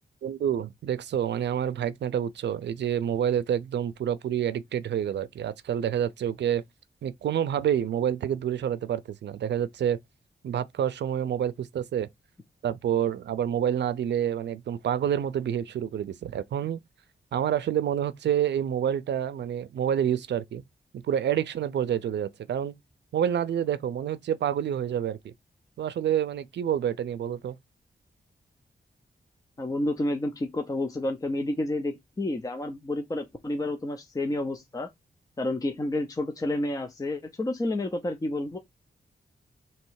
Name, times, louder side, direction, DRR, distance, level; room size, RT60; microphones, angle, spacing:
voice 1, 0.2-6.6 7.0-10.0 10.4-12.1 12.6-16.8 17.3-20.6 20.9-22.7 23.1-25.3 25.8-27.6, right 9 dB, 85° right, 0.5 m, -28 dB
voice 2, 29.6-34.9 35.4-38.6, left 1 dB, 20° left, 0.6 m, -30 dB
3.2 x 2.9 x 4.6 m
wide cardioid pair, 140°, 18 cm